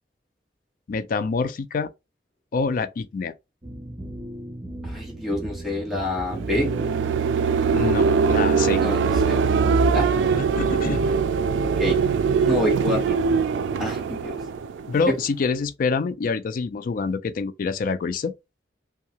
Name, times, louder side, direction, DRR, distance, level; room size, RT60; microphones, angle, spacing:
voice 1, 0.9-1.9 2.5-3.3 7.7-8.8 10.6-11.1 14.9-18.3, left 4 dB, 50° left, 0.3 m, -26 dB
sound 1, 3.6-9.2, right 1 dB, 20° right, 0.5 m, -36 dB
voice 2, 4.8-6.7 8.8-9.4 9.9-10.1 11.8-12.0 12.5-13.2 13.8-14.4 15.1-15.2, left 1 dB, ahead, 1.2 m, -27 dB
sound 2, 6.3-15.3, right 5 dB, 90° right, 0.3 m, -22 dB
2.7 x 2.3 x 2.8 m
head